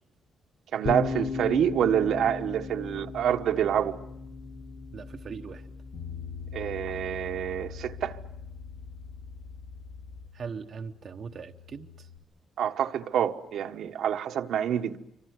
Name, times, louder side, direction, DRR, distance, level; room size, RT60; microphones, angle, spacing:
voice 1, 0.7-3.9 6.5-8.2 12.6-15.0, right 9 dB, 65° right, 1.4 m, -27 dB
sound 1, 0.8-10.3, left 4 dB, 40° left, 1.8 m, -38 dB
voice 2, 4.9-5.7 10.3-12.1, right 6 dB, 40° right, 1.0 m, -40 dB
Bass guitar, 5.9-12.2, left 7 dB, 85° left, 3.5 m, -44 dB
28.5 x 25.5 x 8.0 m
cardioid pair, 180°, 0 cm